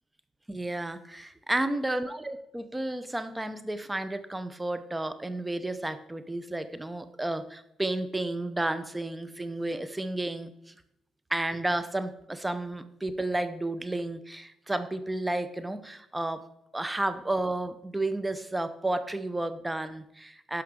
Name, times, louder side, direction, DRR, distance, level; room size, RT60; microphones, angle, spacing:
voice 1, 0.5-10.7 11.3-16.5 16.7-20.6, right 2 dB, 10° right, 12 dB, 0.7 m, -32 dB
10.5 x 6.1 x 3.7 m, 0.77 s
cardioid pair, 90°, 0 cm